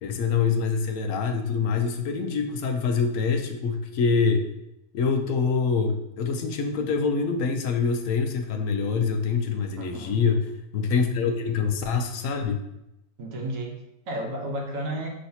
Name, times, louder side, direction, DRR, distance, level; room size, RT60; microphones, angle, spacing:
voice 1, 0.0-4.5 4.9-10.4 10.7-12.6, left 5 dB, 75° left, 5 dB, 1.0 m, -25 dB
voice 2, 9.8-10.2 13.2-15.1, right 1 dB, 75° right, 0 dB, 1.3 m, -33 dB
5.8 x 3.2 x 2.7 m, 0.87 s
omnidirectional pair, 1.4 m